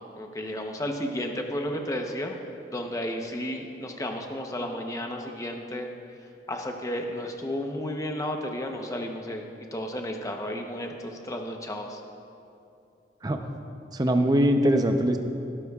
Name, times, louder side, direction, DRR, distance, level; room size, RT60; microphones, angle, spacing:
voice 1, 0.1-2.4 2.7-5.9 6.5-9.4 9.7-12.0, left 1 dB, 20° left, 3 dB, 0.8 m, -32 dB
voice 2, 13.9-15.2, equal, 20° right, 5 dB, 0.6 m, -22 dB
18.0 x 12.0 x 2.4 m, 2.7 s
head